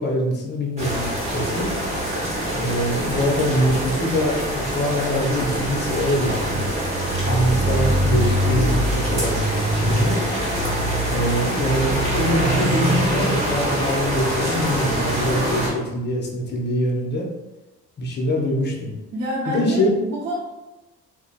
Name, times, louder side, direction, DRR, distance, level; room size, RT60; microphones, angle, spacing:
voice 1, 0.0-1.7 2.5-6.7 7.2-9.4 9.7-10.3 11.1-17.3 18.0-18.9 19.4-19.9, equal, 35° left, -1 dB, 0.7 m, -23 dB
sound 1, 0.8-15.7, right 1 dB, 20° right, 1.1 m, -23 dB
voice 2, 19.1-20.4, right 1 dB, 60° right, -6 dB, 0.7 m, -27 dB
2.6 x 2.0 x 2.5 m, 1.0 s
cardioid pair, 90°, 30 cm